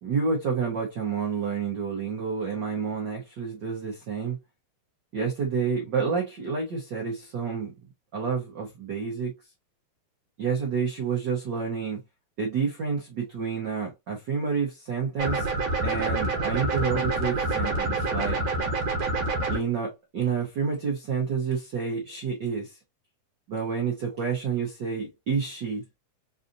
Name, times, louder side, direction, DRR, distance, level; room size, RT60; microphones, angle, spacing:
voice 1, 0.0-4.4 5.1-7.7 8.1-9.3 10.4-12.0 12.4-15.5 15.8-18.4 19.5-22.8 23.5-25.8, right 6 dB, 80° right, 0.9 m, -29 dB
sound 1, 15.2-19.6, right 2 dB, 65° right, 2.1 m, -27 dB
4.8 x 2.6 x 2.6 m
omnidirectional pair, 3.4 m